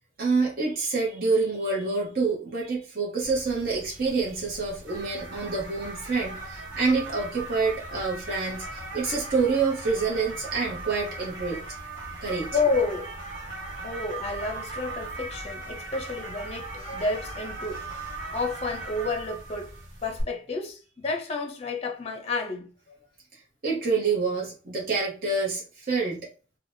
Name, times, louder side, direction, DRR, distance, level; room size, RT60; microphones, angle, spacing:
voice 1, 0.2-11.6 12.2-12.5 16.8-16.9 23.6-26.3, right 4 dB, 50° right, 0.9 m, -27 dB
sound 1, 3.2-20.2, right 2 dB, 80° right, 1.0 m, -39 dB
voice 2, 12.5-13.1 13.8-17.9 18.3-19.7 20.0-23.0, left 3 dB, 35° left, 0.6 m, -30 dB
3.3 x 2.2 x 2.6 m
head